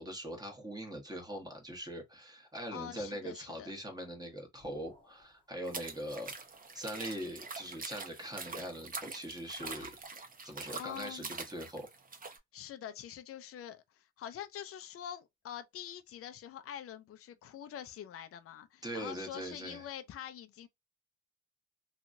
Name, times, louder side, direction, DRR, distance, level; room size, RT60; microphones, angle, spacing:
voice 1, 0.0-6.3 6.7-10.0 10.4-11.9 18.8-19.9, equal, 15° right, 1.2 m, -42 dB
voice 2, 2.7-3.7 10.7-11.4 12.5-20.7, left 10 dB, 50° left, 0.5 m, -45 dB
sound 1, 4.6-5.4 6.3-6.4 6.9-7.4 8.8-9.0 9.3-10.1, left 2 dB, 15° left, 1.0 m, -55 dB
sound 2, 5.7-12.4, right 4 dB, 30° right, 0.8 m, -44 dB
2.9 x 2.4 x 2.5 m
cardioid pair, 90°, 30 cm